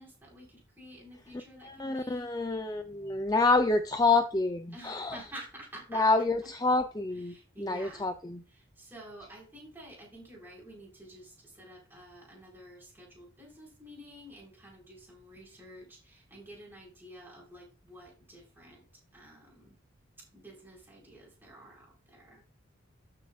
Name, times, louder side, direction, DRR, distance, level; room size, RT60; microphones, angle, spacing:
voice 1, 0.0-2.3 4.7-6.0 6.4-6.5 7.1-8.1 8.5-19.7 20.2-22.4, right 1 dB, 10° right, -3 dB, 4.7 m, -50 dB
voice 2, 1.6-5.2 5.9-8.4, left 3 dB, 20° left, 7 dB, 0.4 m, -28 dB
13.5 x 6.8 x 2.4 m, 0.35 s
head